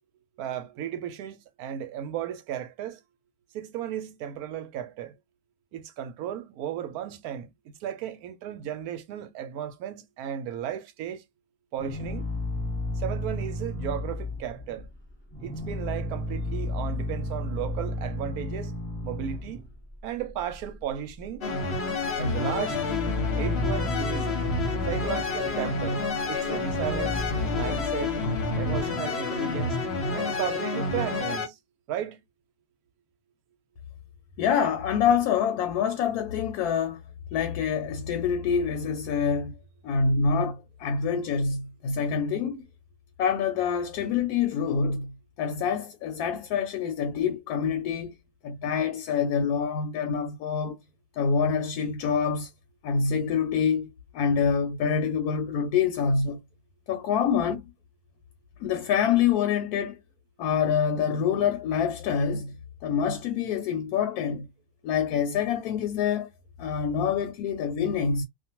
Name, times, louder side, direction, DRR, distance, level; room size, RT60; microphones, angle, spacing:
voice 1, 0.4-3.0 3.5-5.1 5.7-11.2 11.7-12.3 13.0-14.9 15.4-18.7 19.0-19.6 20.0-21.5 22.2-23.0 23.3-24.3 24.9-27.2 27.5-28.1 28.6-29.8 30.1-31.6 31.9-32.2 37.3-37.4, right 10 dB, 70° right, 1.0 m, -35 dB
sound 1, 11.8-15.0 15.3-19.9 20.2-21.3 21.5-21.7 22.1-26.1 26.5-28.8, left 1 dB, 10° left, 0.9 m, -33 dB
sound 2, 21.4-31.5, left 3 dB, 50° left, 0.8 m, -29 dB
voice 2, 34.4-37.0 37.3-39.6 39.8-42.6 43.2-45.1 45.4-48.1 48.4-50.8 51.2-52.5 52.8-56.4 56.9-57.7 58.6-60.0 60.4-62.5 62.8-64.5 64.8-66.3 66.6-68.2, left 6 dB, 75° left, 1.0 m, -26 dB
2.5 x 2.2 x 2.8 m
omnidirectional pair, 1.7 m